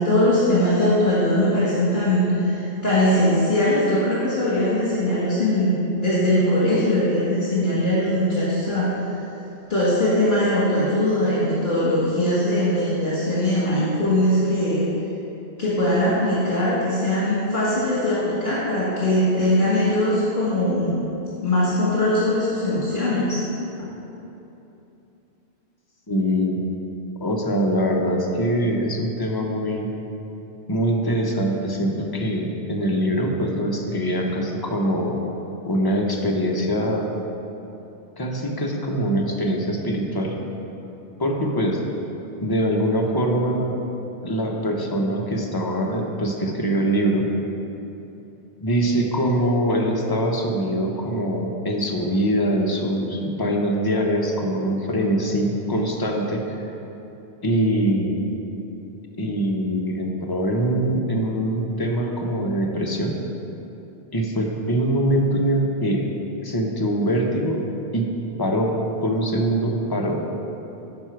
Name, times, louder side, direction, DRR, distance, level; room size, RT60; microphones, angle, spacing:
voice 1, 0.0-9.2 9.7-14.9 15.6-21.0 21.4-23.4, left 1 dB, 50° left, -9 dB, 1.8 m, -21 dB
voice 2, 26.1-26.6 27.2-29.9 30.7-35.2 35.6-37.0 38.2-40.3 41.2-41.8 42.4-43.8 44.2-47.2 48.6-56.5 57.4-58.2 59.2-63.1 64.1-66.0 66.4-67.6 67.9-68.1 68.4-68.7 69.0-70.2, equal, 25° left, 0 dB, 0.8 m, -23 dB
9.7 x 6.0 x 4.6 m, 3.0 s
omnidirectional pair, 1.1 m